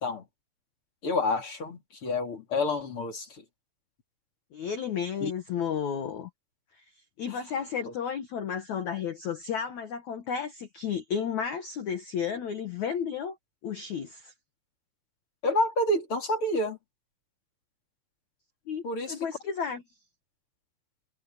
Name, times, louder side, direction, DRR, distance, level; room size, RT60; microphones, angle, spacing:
voice 1, 1.0-3.4 5.2-5.3 7.8-7.9 15.4-16.8 18.8-19.2, left 1 dB, 30° left, 3.3 m, -28 dB
voice 2, 4.5-6.3 7.2-13.4 13.6-14.3 18.7-19.8, left 7 dB, 85° left, 1.6 m, -32 dB
omnidirectional pair, 5.6 m